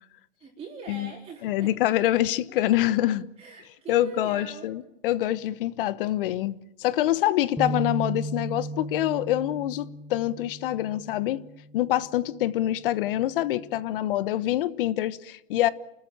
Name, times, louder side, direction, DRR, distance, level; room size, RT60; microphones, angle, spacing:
voice 1, 0.4-2.0 2.5-2.7 3.4-4.7, right 5 dB, 20° right, 4.0 m, -43 dB
voice 2, 1.4-3.3 3.9-11.4 11.7-15.7, left 13 dB, 65° left, 1.2 m, -25 dB
sound 1, 7.6-11.8 12.3-12.5 13.4-13.8, right 2 dB, ahead, 1.2 m, -36 dB
29.0 x 14.0 x 8.9 m
supercardioid pair, 140°, 29 cm